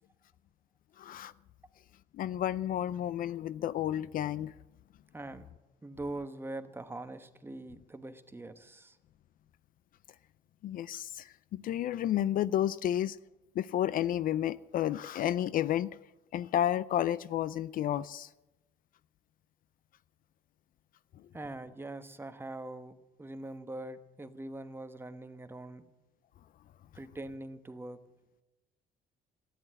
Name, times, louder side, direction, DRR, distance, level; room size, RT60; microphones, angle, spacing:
voice 1, 1.0-1.3 2.1-4.5 10.6-13.2 13.6-15.9 16.3-18.3, left 11 dB, 55° left, 0.5 m, -31 dB
voice 2, 5.1-5.4 5.8-9.0 21.3-22.9 23.2-25.8 26.9-28.0, right 2 dB, 15° right, 1.1 m, -42 dB
13.5 x 10.5 x 9.9 m
cardioid pair, 110°, 17 cm